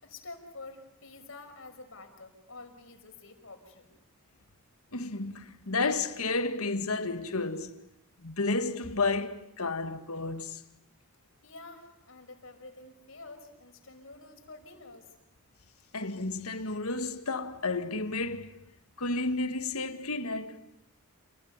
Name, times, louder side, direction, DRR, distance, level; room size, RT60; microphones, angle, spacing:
voice 1, 0.0-4.0 11.4-15.1, left 3 dB, 60° left, 5.7 m, -48 dB
voice 2, 4.9-7.7 8.2-10.6 15.9-18.5 19.0-20.6, left 3 dB, 80° left, 1.9 m, -31 dB
29.0 x 20.5 x 9.6 m
head